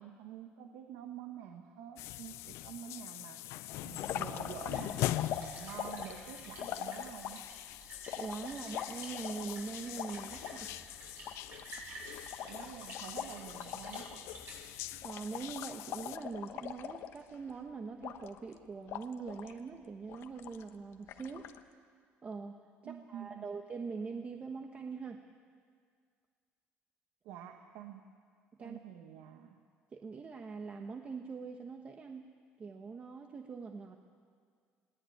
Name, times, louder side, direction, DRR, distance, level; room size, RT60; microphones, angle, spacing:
voice 1, 0.0-7.4 12.4-14.3 22.8-23.4 27.2-28.1 28.6-29.6, right 9 dB, 85° right, 5 dB, 1.4 m, -48 dB
sound 1, 2.0-16.2, left 16 dB, 80° left, 0.5 m, -43 dB
sound 2, 4.0-7.5 8.1-10.6 10.9-11.0 11.3-14.2 14.5-14.7 15.0-17.5 18.0-18.5 18.9-19.6 20.1-20.7 21.1-21.6, left 10 dB, 65° left, 1.2 m, -42 dB
Splash splatter, 4.5-15.1, right 2 dB, 50° right, 7.5 m, -52 dB
voice 2, 8.1-10.7 15.0-21.5 22.2-22.6 22.8-25.2 28.6-28.8 29.9-32.3 32.6-34.0, right 4 dB, 30° right, 4 dB, 1.1 m, -43 dB
21.0 x 18.0 x 9.4 m, 2.1 s
cardioid pair, 130°, 5 cm